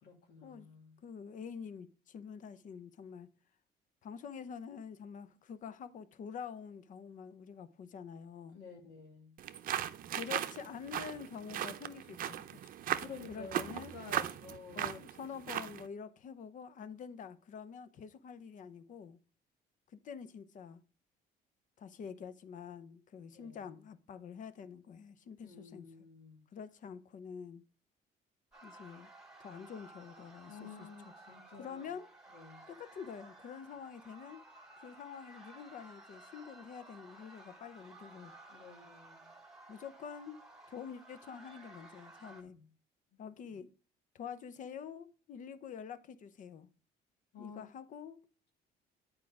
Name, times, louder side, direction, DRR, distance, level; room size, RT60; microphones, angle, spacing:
voice 1, 0.0-1.0 8.5-9.3 13.0-14.9 23.3-23.8 25.4-26.4 30.5-31.9 32.3-32.7 38.5-39.3 42.4-42.7 43.1-43.3 47.3-47.6, left 4 dB, 80° left, 2.4 m, -51 dB
voice 2, 1.0-3.3 4.0-8.6 10.1-12.6 13.3-13.9 14.8-19.2 19.9-20.8 21.8-25.9 26.5-27.6 28.6-29.1 29.4-31.1 31.6-32.1 32.7-34.4 34.8-38.3 39.7-40.4 40.7-42.6 43.2-43.7 44.1-46.7 47.4-48.2, left 7 dB, 50° left, 0.7 m, -47 dB
sound 1, 9.4-15.9, right 11 dB, 55° right, 0.6 m, -38 dB
sound 2, 28.5-42.4, right 2 dB, 5° right, 2.0 m, -56 dB
8.5 x 4.8 x 4.8 m
cardioid pair, 110°, 17 cm